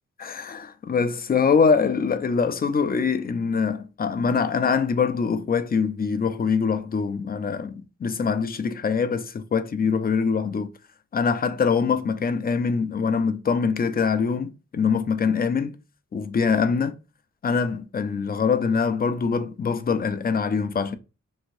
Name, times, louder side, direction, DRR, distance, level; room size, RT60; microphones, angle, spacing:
voice 1, 0.2-10.7 11.1-15.8 16.1-17.0 17.4-21.0, left 5 dB, 30° left, 0.4 m, -24 dB
2.7 x 2.5 x 3.0 m
cardioid pair, 65°, 29 cm